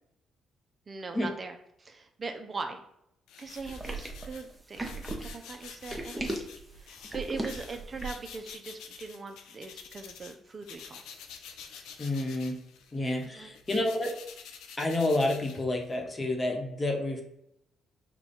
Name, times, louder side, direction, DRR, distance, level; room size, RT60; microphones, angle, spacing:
voice 1, 0.9-2.8 3.4-6.4 6.7-11.0 13.2-13.5, right 4 dB, 35° right, 6 dB, 0.5 m, -41 dB
sound 1, 3.3-10.4 10.6-16.1, left 7 dB, 90° left, 0.5 m, -48 dB
sound 2, 3.6-8.3, right 2 dB, 15° right, 0.8 m, -37 dB
voice 2, 12.0-12.6 12.9-14.1 14.8-17.2, left 1 dB, 30° left, 2 dB, 1.0 m, -29 dB
5.2 x 2.3 x 4.2 m, 0.78 s
cardioid pair, 90°, 0 cm